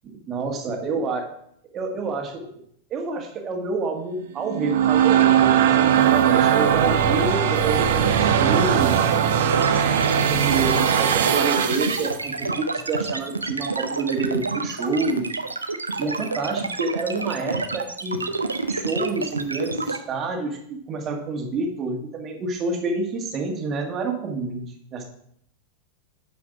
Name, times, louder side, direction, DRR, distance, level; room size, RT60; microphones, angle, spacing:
voice 1, 0.0-1.3 1.7-2.5 2.9-9.0 10.1-15.3 16.0-18.3 18.7-25.0, right 3 dB, 30° right, 3 dB, 1.7 m, -28 dB
sound 1, 4.4-12.2, right 9 dB, 55° right, 0.9 m, -19 dB
sound 2, 9.5-20.0, right 3 dB, 80° right, 0.6 m, -28 dB
10.0 x 5.2 x 4.8 m, 0.69 s
figure-of-eight pair, 90°, 0 cm